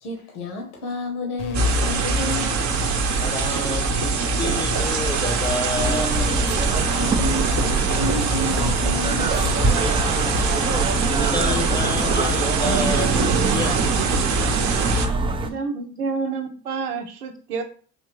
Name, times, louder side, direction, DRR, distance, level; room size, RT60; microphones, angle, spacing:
voice 1, 0.0-2.6 6.9-9.5, left 2 dB, 80° left, 1 dB, 1.1 m, -30 dB
sound 1, 1.4-10.8, left 5 dB, 45° left, 0.8 m, -34 dB
sound 2, 1.5-15.1, right 5 dB, 40° right, 0.7 m, -23 dB
voice 2, 3.2-6.3 10.2-10.6 11.2-13.8, left 2 dB, 10° left, 5 dB, 0.7 m, -29 dB
sound 3, 5.7-15.5, right 3 dB, 15° right, 0.3 m, -24 dB
voice 3, 15.4-17.6, right 4 dB, 85° right, 6 dB, 0.7 m, -28 dB
3.5 x 2.8 x 3.0 m, 0.42 s
hypercardioid pair, 65°, 45 cm